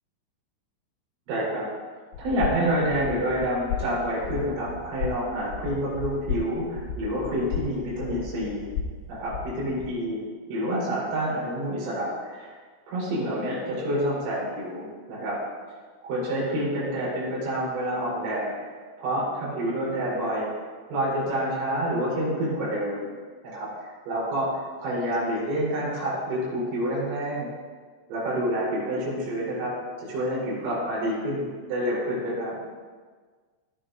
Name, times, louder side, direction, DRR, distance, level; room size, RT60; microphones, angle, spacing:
voice 1, 1.3-1.7 2.2-8.6 9.1-10.2 10.5-12.5 12.9-15.4 16.0-20.5 20.9-23.1 23.4-27.5 28.1-29.7 30.0-32.5, right 1 dB, 70° right, -7 dB, 6.2 m, -28 dB
sound 1, 2.1-9.9, left 7 dB, 85° left, 3.1 m, -34 dB
15.0 x 10.0 x 2.6 m, 1.5 s
omnidirectional pair, 5.7 m